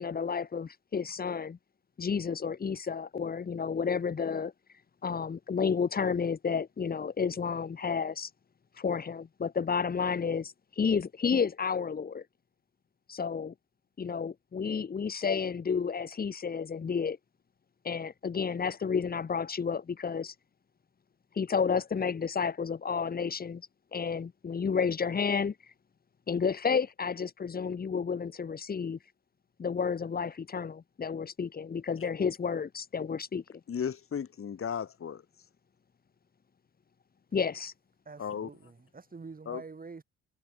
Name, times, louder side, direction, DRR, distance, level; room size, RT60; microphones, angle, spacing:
voice 1, 0.0-1.6 2.0-4.5 5.0-8.3 8.8-12.2 13.1-13.5 14.0-17.2 17.8-20.3 21.4-23.6 23.9-25.5 26.3-29.0 29.6-33.4 37.3-37.7, left 6 dB, 30° left, 1.1 m, -31 dB
voice 2, 33.7-35.2 38.2-38.5 39.5-39.6, left 7 dB, 45° left, 2.7 m, -35 dB
voice 3, 38.0-40.0, right 4 dB, 30° right, 6.3 m, -46 dB
cardioid pair, 90°, 30 cm